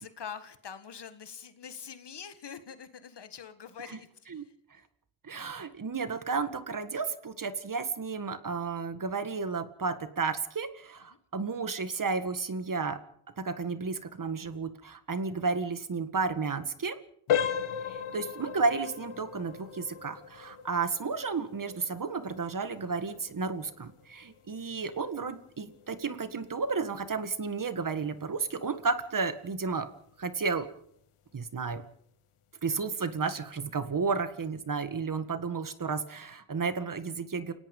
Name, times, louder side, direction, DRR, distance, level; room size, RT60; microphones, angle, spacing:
voice 1, 0.0-4.1, left 7 dB, 55° left, 10 dB, 1.9 m, -44 dB
voice 2, 5.2-13.0 13.4-17.0 17.9-29.9 30.2-30.7 31.3-31.8 32.6-37.5, right 4 dB, 40° right, 11 dB, 1.9 m, -32 dB
sound 1, 17.3-28.0 28.3-28.5 29.1-29.2 29.7-29.9, left 8 dB, 75° left, 1.7 m, -37 dB
29.0 x 17.5 x 5.5 m, 0.68 s
cardioid pair, 95°, 50 cm